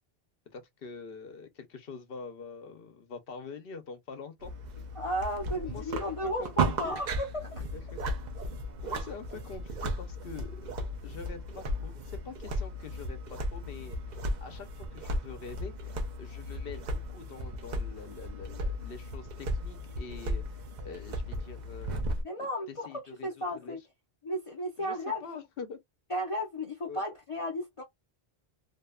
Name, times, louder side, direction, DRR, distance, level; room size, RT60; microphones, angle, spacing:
voice 1, 0.5-4.5 5.6-7.0 7.7-8.0 8.8-10.7 11.0-22.0 22.4-23.8 24.8-25.8 26.9-27.0, left 5 dB, 65° left, 0.8 m, -45 dB
sound 1, 4.4-22.2, right 1 dB, 55° right, 0.6 m, -35 dB
voice 2, 4.9-7.7 22.2-22.9 23.2-23.8 24.2-25.2 26.1-27.8, equal, 40° left, 0.5 m, -34 dB
2.6 x 2.1 x 2.2 m
omnidirectional pair, 1.1 m